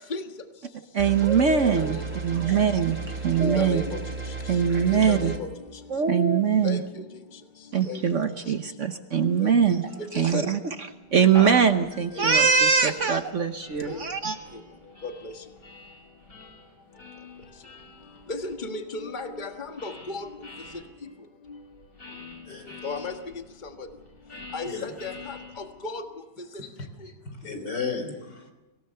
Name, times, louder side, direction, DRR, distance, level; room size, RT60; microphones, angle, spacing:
voice 1, 0.9-3.8 4.5-5.3 5.9-6.8 7.7-10.6 11.1-14.4, right 6 dB, 50° right, 8 dB, 1.1 m, -22 dB
sound 1, 1.0-5.4, right 3 dB, 5° right, 3.0 m, -34 dB
voice 2, 3.4-4.6 4.9-5.5 6.6-7.0 7.9-8.0 9.4-9.5 10.0-10.4 12.1-12.3 13.8-14.0 14.5-14.6 15.0-15.3 18.3-20.5 21.5-21.6 22.8-23.9 24.5-26.0 26.4-26.5, left 3 dB, 30° left, 5 dB, 1.7 m, -35 dB
sound 2, 11.0-20.8 21.4-25.9, left 2 dB, 50° left, 6.6 m, -45 dB
voice 3, 22.5-22.8 24.7-24.9 26.6-26.7 27.2-28.5, left 5 dB, 80° left, 6 dB, 3.9 m, -34 dB
24.5 x 17.0 x 6.9 m, 1.1 s
omnidirectional pair, 1.9 m